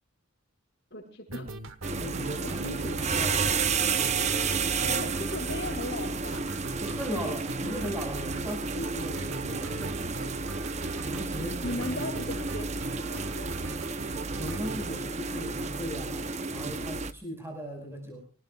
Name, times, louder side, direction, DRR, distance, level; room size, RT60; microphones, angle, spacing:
voice 1, 0.9-1.5 2.4-3.0 4.8-6.5 11.6-13.8, left 1 dB, 50° left, 1 dB, 5.9 m, -37 dB
sound 1, 1.3-14.9, right 3 dB, 70° right, 1.3 m, -40 dB
sound 2, 1.8-17.1, right 4 dB, 30° right, 0.8 m, -31 dB
voice 2, 1.9-3.4 6.8-10.2 11.0-12.1 14.4-18.2, equal, 10° right, 2 dB, 5.4 m, -38 dB
25.0 x 18.5 x 2.4 m, 0.36 s
head